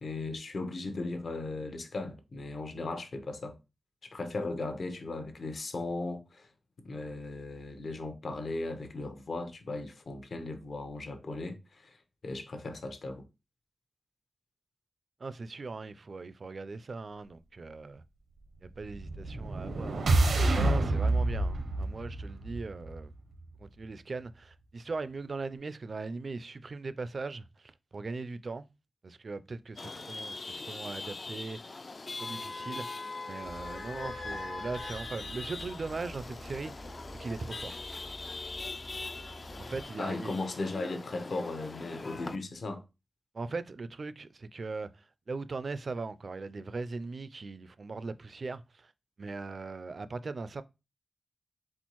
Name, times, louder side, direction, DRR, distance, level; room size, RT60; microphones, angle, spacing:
voice 1, 0.0-3.6 4.0-6.5 6.8-12.0 12.2-13.2 40.0-42.8, left 2 dB, 60° left, 0.8 m, -37 dB
voice 2, 15.2-18.0 18.6-20.1 20.5-23.1 23.6-28.7 29.0-31.7 32.2-37.7 39.2-39.3 39.6-40.3 43.3-48.9 49.2-50.6, right 3 dB, 50° right, 0.3 m, -39 dB
sound 1, 18.9-23.1, right 2 dB, 90° right, 0.7 m, -28 dB
Chatter / Vehicle horn car horn honking / Traffic noise roadway noise, 29.8-42.4, left 3 dB, 40° left, 0.3 m, -42 dB
Idling / Squeak, 33.4-39.8, left 1 dB, 85° left, 1.6 m, -46 dB
4.3 x 3.8 x 3.0 m
wide cardioid pair, 110°, 0 cm